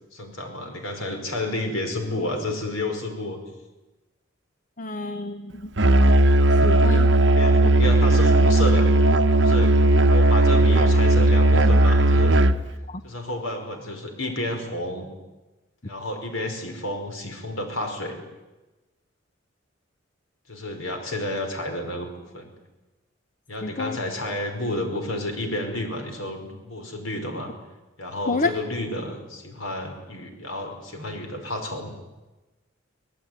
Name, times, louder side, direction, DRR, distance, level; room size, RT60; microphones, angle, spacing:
voice 1, 0.1-3.4 7.2-8.9 9.4-9.7 10.1-12.3 13.0-15.1 15.8-18.2 20.5-22.5 23.5-27.5 28.0-31.9, left 1 dB, 85° left, 4 dB, 5.2 m, -31 dB
voice 2, 4.8-6.1 6.6-7.1 12.9-13.0 23.6-24.0 28.3-28.5, left 3 dB, 40° left, 10 dB, 0.9 m, -29 dB
Musical instrument, 5.8-12.7, right 1 dB, 60° right, 1.1 m, -17 dB
25.0 x 17.5 x 9.6 m, 1.1 s
head